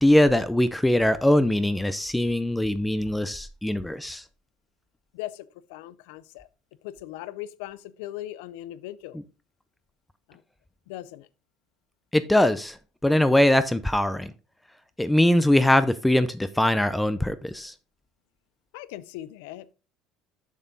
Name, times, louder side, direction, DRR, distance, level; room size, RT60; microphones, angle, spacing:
voice 1, 0.0-4.2 12.1-14.3 15.0-17.7, left 1 dB, 5° left, 0.4 m, -22 dB
voice 2, 5.1-6.5 6.8-9.2 10.3-10.4 10.9-11.3 18.7-19.7, left 14 dB, 90° left, 0.4 m, -39 dB
7.3 x 5.9 x 3.9 m
cardioid pair, 135°, 0 cm